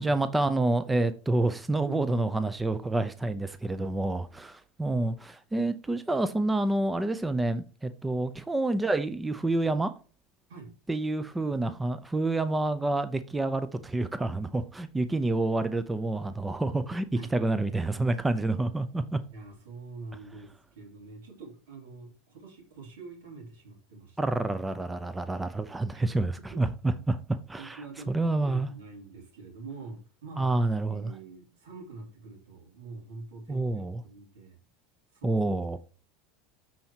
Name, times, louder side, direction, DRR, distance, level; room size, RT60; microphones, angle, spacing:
voice 1, 0.0-9.9 10.9-17.1 17.3-19.2 24.2-27.2 27.5-27.8 28.1-28.7 30.4-31.1 33.5-34.0 35.2-35.8, right 2 dB, 10° right, 0.6 m, -28 dB
voice 2, 1.8-2.5 10.5-10.7 17.1-17.3 19.3-24.3 25.9-26.0 26.5-26.6 27.0-27.1 27.6-30.6 30.9-34.6 35.1-35.4, right 3 dB, 80° right, 2.9 m, -45 dB
13.0 x 4.4 x 2.9 m
hypercardioid pair, 90°, 0 cm